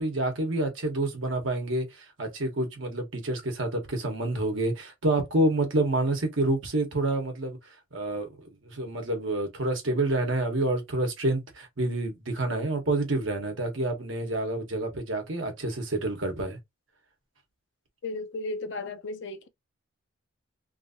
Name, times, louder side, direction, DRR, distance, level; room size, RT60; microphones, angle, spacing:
voice 1, 0.0-7.6 7.9-16.6, right 2 dB, 65° right, 1.2 m, -28 dB
voice 2, 18.0-19.5, left 2 dB, 55° left, 0.5 m, -34 dB
2.9 x 2.6 x 2.6 m
head